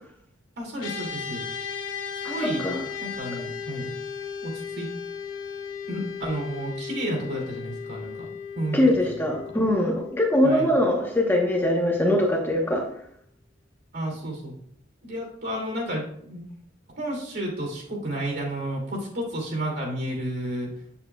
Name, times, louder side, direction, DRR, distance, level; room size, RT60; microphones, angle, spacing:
voice 1, 0.6-1.4 2.2-2.6 3.0-3.9 4.4-4.9 5.9-8.2 8.5-9.2 9.5-9.6 10.4-10.7 13.9-14.5 15.0-16.4 17.0-20.7, right 1 dB, 60° right, 0 dB, 2.5 m, -31 dB
sound 1, 0.8-12.3, left 6 dB, 85° left, 1.3 m, -36 dB
voice 2, 2.2-2.8 8.7-12.8, left 1 dB, 10° left, -1 dB, 1.0 m, -22 dB
8.0 x 7.1 x 2.3 m, 0.69 s
head